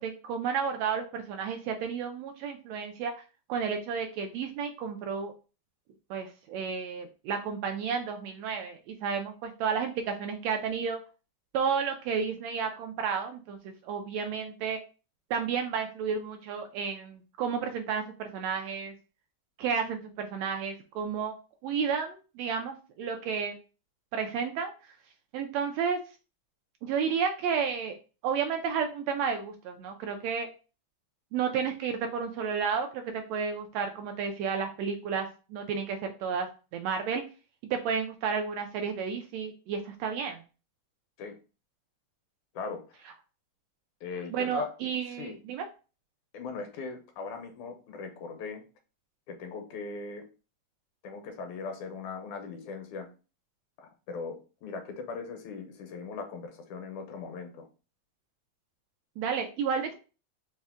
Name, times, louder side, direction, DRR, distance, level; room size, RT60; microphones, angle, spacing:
voice 1, 0.0-3.1 3.5-5.3 6.1-11.0 11.5-14.8 15.3-18.9 19.6-21.3 21.6-23.6 24.1-24.7 25.3-26.0 26.8-27.9 28.2-30.5 31.3-37.2 37.7-40.4 44.3-45.6 59.2-60.0, right 6 dB, 80° right, 5 dB, 1.6 m, -32 dB
voice 2, 44.0-44.7 45.1-45.4 46.3-48.6 49.3-50.3 51.0-53.1 53.8-57.7, left 4 dB, 85° left, 5 dB, 2.2 m, -39 dB
5.2 x 2.1 x 3.5 m, 0.34 s
omnidirectional pair, 3.3 m